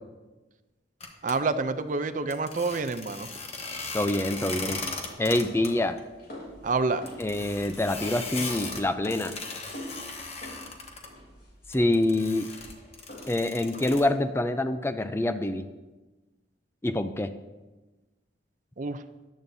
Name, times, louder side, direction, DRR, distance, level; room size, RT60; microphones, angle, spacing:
sound 1, 1.0-1.3 2.3-5.7 6.0-6.1 6.4-6.5 7.1-11.1 11.7-14.0, left 3 dB, 35° left, 1.2 m, -38 dB
voice 1, 1.2-3.3 6.6-7.1 18.8-19.0, right 3 dB, 45° right, 12 dB, 0.5 m, -28 dB
voice 2, 3.9-4.8 5.2-6.0 7.2-9.3 11.7-12.5 13.3-15.7 16.8-17.3, left 1 dB, 15° left, 10 dB, 0.4 m, -26 dB
sound 2, 4.5-14.2, equal, 55° left, 3.3 m, -47 dB
14.0 x 10.5 x 2.7 m, 1.2 s
head